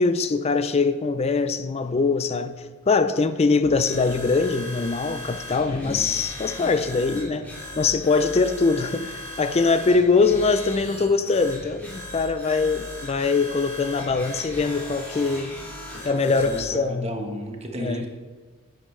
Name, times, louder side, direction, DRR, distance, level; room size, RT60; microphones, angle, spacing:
voice 1, 0.0-2.6 2.9-7.5 7.8-15.5 16.0-17.1 17.8-18.1, left 4 dB, 30° left, 0.4 m, -22 dB
sound 1, 3.6-16.7, left 1 dB, 10° left, 2.3 m, -38 dB
voice 2, 5.6-6.0 15.9-18.1, equal, 30° right, 1.1 m, -34 dB
10.5 x 8.9 x 3.2 m
head